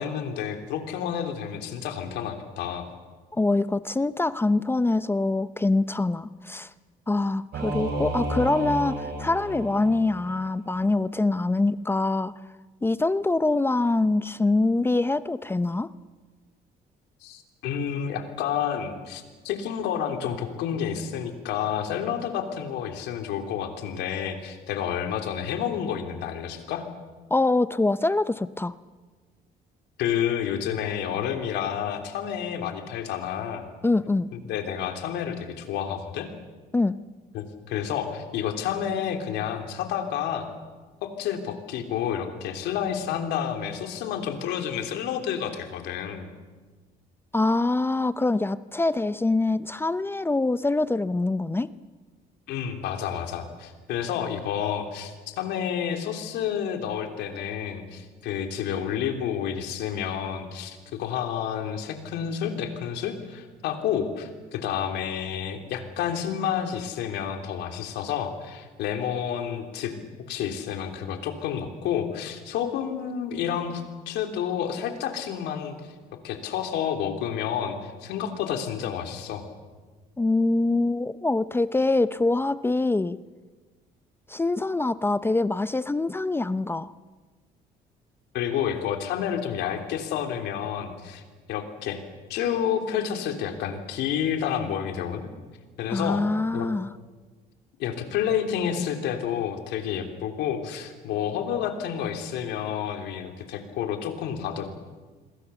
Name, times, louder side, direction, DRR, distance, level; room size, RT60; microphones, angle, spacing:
voice 1, 0.0-2.9 17.2-26.8 30.0-33.7 34.3-36.3 37.3-40.5 41.0-46.3 52.5-69.9 70.3-75.9 76.2-79.4 88.3-91.2 91.5-92.0 92.3-95.3 95.8-96.2 96.5-96.7 97.8-104.7, left 8 dB, 85° left, 5 dB, 3.4 m, -30 dB
voice 2, 3.3-6.7 7.1-12.3 12.8-15.9 27.3-28.7 33.8-34.3 36.7-37.0 47.3-51.7 80.2-83.2 84.3-86.9 95.9-96.9, left 2 dB, 15° left, 14 dB, 0.7 m, -24 dB
Singing / Musical instrument, 7.5-10.4, right 1 dB, 65° right, 7.1 m, -31 dB
28.0 x 22.5 x 7.1 m, 1.4 s
cardioid pair, 110°, 17 cm